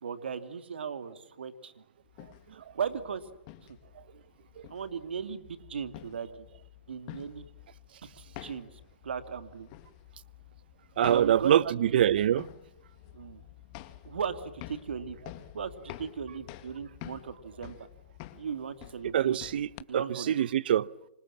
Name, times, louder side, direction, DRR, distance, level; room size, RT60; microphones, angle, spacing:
voice 1, 0.0-1.7 2.5-3.3 3.6-3.8 4.7-6.5 6.9-7.5 8.4-9.7 11.0-12.1 13.1-13.4 14.0-15.2 15.5-17.9 18.4-19.4 19.9-20.3, right 6 dB, 80° right, 2.8 m, -37 dB
sound 1, 2.0-19.8, left 14 dB, 40° left, 2.1 m, -49 dB
voice 2, 11.0-12.4 19.1-19.7 19.9-20.9, right 10 dB, 65° right, 0.9 m, -24 dB
28.5 x 25.5 x 7.6 m
hypercardioid pair, 140°, 6 cm